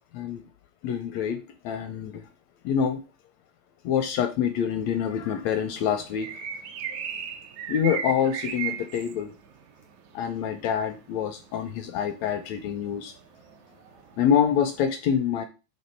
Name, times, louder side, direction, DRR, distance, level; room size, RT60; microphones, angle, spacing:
voice 1, 0.8-2.2 2.6-3.0 3.8-6.3 7.7-9.3 10.1-13.1 14.2-15.5, left 8 dB, 80° left, 8 dB, 1.6 m, -26 dB
sound 1, 5.2-14.8, right 8 dB, 75° right, 2.0 m, -37 dB
6.9 x 3.2 x 4.3 m, 0.30 s
omnidirectional pair, 3.5 m